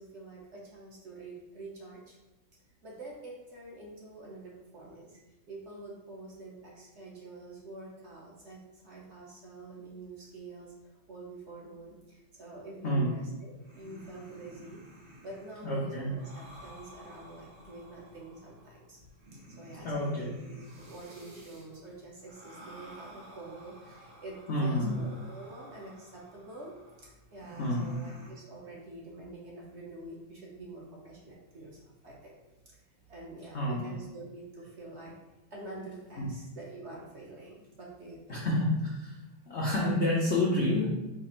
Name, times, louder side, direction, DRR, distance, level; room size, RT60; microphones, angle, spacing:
voice 1, 0.0-2.2 2.8-5.2 5.5-14.8 15.2-19.0 19.5-32.3 33.1-35.2 35.5-38.5, right 2 dB, 65° right, -3 dB, 0.6 m, -46 dB
sound 1, 13.5-28.3, equal, 85° right, 2.5 m, -52 dB
voice 2, 15.6-16.1 19.8-20.3 24.5-24.9 27.6-27.9 33.5-33.9 38.3-39.1 39.5-40.9, left 1 dB, 85° left, -5 dB, 0.5 m, -28 dB
5.1 x 2.5 x 4.3 m, 1.1 s
omnidirectional pair, 2.2 m